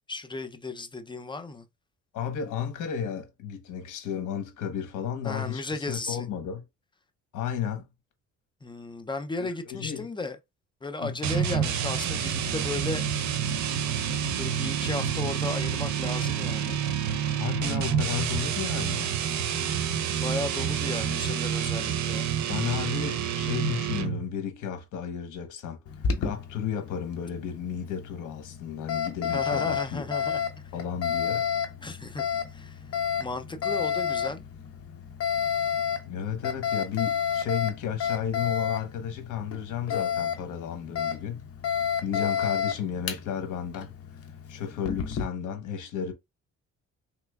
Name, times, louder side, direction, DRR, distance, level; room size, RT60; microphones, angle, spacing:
voice 1, 0.1-1.7 5.2-6.3 8.6-10.4 10.8-13.0 14.3-16.8 20.2-22.3 29.3-30.7 31.8-32.2 32.5-32.8 33.2-34.4, left 2 dB, 15° left, 0.5 m, -35 dB
voice 2, 2.1-6.6 7.3-7.8 9.7-10.1 11.0-11.2 17.4-19.1 22.5-25.8 26.2-30.1 30.7-31.5 36.1-41.4 42.0-43.9 44.5-46.1, left 8 dB, 80° left, 0.9 m, -33 dB
sound 1, 11.2-24.3, right 8 dB, 70° right, 0.7 m, -28 dB
Alarm, 25.9-45.2, left 7 dB, 50° left, 0.8 m, -31 dB
3.3 x 3.0 x 2.3 m
cardioid pair, 90°, 30 cm